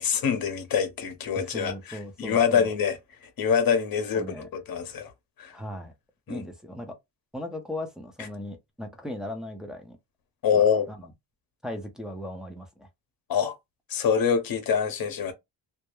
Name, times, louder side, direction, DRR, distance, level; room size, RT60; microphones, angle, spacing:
voice 1, 0.0-5.1 5.4-5.5 6.3-6.4 8.2-8.3 10.4-10.9 13.3-13.5 13.9-15.3, left 7 dB, 50° left, 0.8 m, -25 dB
voice 2, 1.4-2.7 4.1-4.5 5.5-5.9 6.3-7.0 7.3-10.0 10.5-11.1 11.6-12.9, left 1 dB, ahead, 0.4 m, -37 dB
2.3 x 2.0 x 3.0 m
cardioid pair, 120°, 45 cm